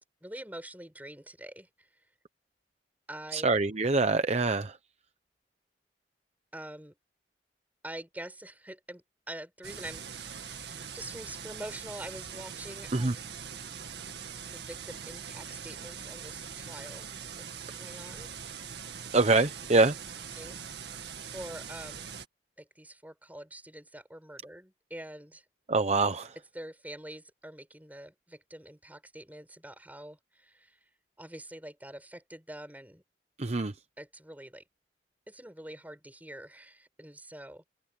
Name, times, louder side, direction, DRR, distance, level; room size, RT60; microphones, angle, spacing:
voice 1, 0.2-1.9 3.1-3.5 6.5-6.9 7.8-13.1 14.5-17.1 17.4-17.5 17.8-18.3 20.3-20.9 21.2-22.1 22.6-25.4 26.5-30.8 31.2-33.0 34.0-34.6 35.3-37.6, right 1 dB, 10° right, 7.7 m, -45 dB
voice 2, 3.3-4.8 12.9-13.1 19.1-19.9 25.7-26.3 33.4-33.7, right 3 dB, 40° right, 0.8 m, -25 dB
sound 1, 9.6-22.3, right 7 dB, 70° right, 2.0 m, -42 dB
head